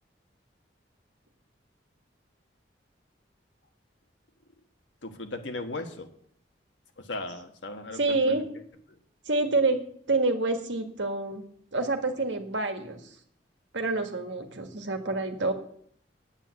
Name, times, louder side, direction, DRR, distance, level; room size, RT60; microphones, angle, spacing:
voice 1, 5.0-6.1 7.0-8.4 8.9-9.0, left 2 dB, 80° left, 6 dB, 1.5 m, -37 dB
voice 2, 7.9-8.5 9.3-11.4 11.7-13.0 13.7-15.5, right 3 dB, 80° right, 6 dB, 1.7 m, -27 dB
9.2 x 8.9 x 8.3 m, 0.65 s
head